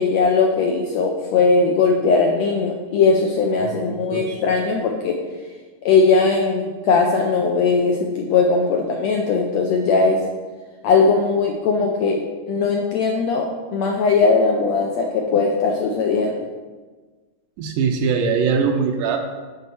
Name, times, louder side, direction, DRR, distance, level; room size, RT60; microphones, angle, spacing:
voice 1, 0.0-5.2 5.8-10.2 10.8-16.5, left 4 dB, 80° left, 1 dB, 1.5 m, -19 dB
voice 2, 3.8-4.4 17.6-19.2, right 6 dB, 75° right, 4 dB, 2.1 m, -21 dB
8.0 x 5.1 x 7.0 m, 1.4 s
omnidirectional pair, 3.9 m